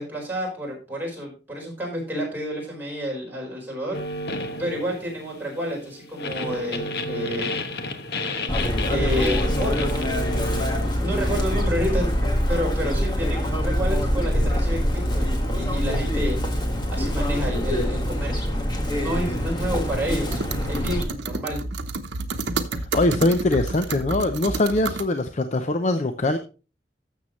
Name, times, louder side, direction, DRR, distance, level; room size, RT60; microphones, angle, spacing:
voice 1, 0.0-4.0 4.6-7.5 8.9-10.5 11.0-16.4 16.9-18.5 18.9-21.6, equal, 10° right, -3 dB, 4.5 m, -30 dB
sound 1, 3.9-11.6, left 2 dB, 65° left, 1.1 m, -32 dB
Chirp tweet, 8.5-21.0, equal, 25° left, 1.6 m, -24 dB
sound 2, 20.3-25.1, right 3 dB, 85° right, 0.9 m, -30 dB
voice 2, 22.9-26.4, left 2 dB, 40° left, 8 dB, 0.6 m, -22 dB
12.5 x 7.3 x 3.1 m, 0.34 s
head